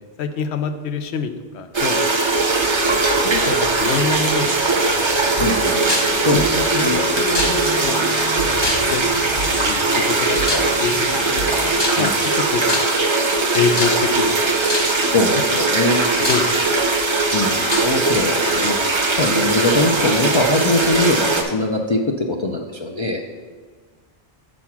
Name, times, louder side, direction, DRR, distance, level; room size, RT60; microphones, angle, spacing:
voice 1, 0.0-2.0 2.5-5.0 5.3-5.5 6.3-10.4 10.8-11.5 12.0-12.8 13.5-14.9 16.3-16.9, left 5 dB, 85° left, 9 dB, 0.9 m, -27 dB
sound 1, 1.7-21.4, right 3 dB, 30° right, 0.6 m, -20 dB
sound 2, 4.8-11.7, equal, 70° left, 1.5 m, -33 dB
voice 2, 5.4-6.5 6.8-7.0 10.5-10.7 12.0-12.2 15.0-16.1 17.3-23.2, left 2 dB, 45° left, 1 dB, 0.4 m, -22 dB
sound 3, 5.9-6.2 7.3-7.9 8.6-9.2 10.5-10.8 11.8-12.3 12.7-13.1 13.8-14.2 14.7-15.0 15.7-15.8 16.2-16.9 17.7-17.9, left 1 dB, 25° left, 0.9 m, -24 dB
6.2 x 4.6 x 5.8 m, 1.5 s
omnidirectional pair, 1.1 m